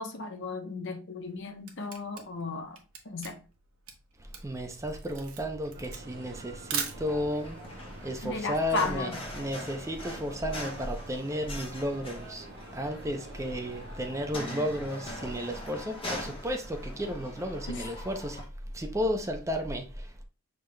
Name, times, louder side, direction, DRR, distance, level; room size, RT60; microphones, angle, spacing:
voice 1, 0.0-2.8 3.0-3.4 8.2-9.2 17.7-17.9, left 3 dB, 55° left, 0.8 m, -34 dB
Camera, 1.2-7.5, right 7 dB, 85° right, 1.1 m, -39 dB
voice 2, 4.2-12.5 12.7-18.5 18.7-20.2, equal, 15° right, 0.5 m, -33 dB
sound 1, 5.7-15.4, right 1 dB, 55° right, 1.4 m, -48 dB
sound 2, 7.0-18.5, left 1 dB, 25° left, 1.0 m, -43 dB
6.5 x 3.6 x 2.2 m
head